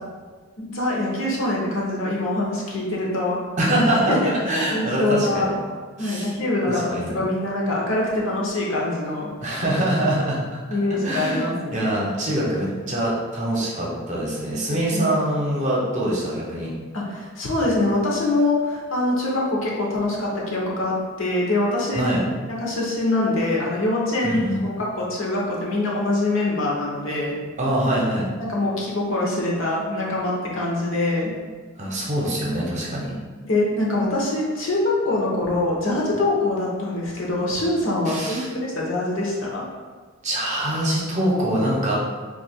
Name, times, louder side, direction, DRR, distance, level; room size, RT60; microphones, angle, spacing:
voice 1, 0.6-3.4 4.1-5.5 6.0-9.3 10.7-11.9 14.7-15.2 16.9-22.1 22.5-27.4 28.4-31.3 33.5-39.6, left 2 dB, 65° left, -4 dB, 0.8 m, -24 dB
voice 2, 3.6-5.5 6.0-6.3 6.7-7.1 9.4-10.4 10.7-11.4 11.7-16.7 22.0-22.2 24.2-24.6 27.6-28.3 31.8-33.1 38.1-38.5 40.2-41.9, right 1 dB, 35° right, -4 dB, 0.7 m, -24 dB
2.8 x 2.4 x 4.2 m, 1.5 s
head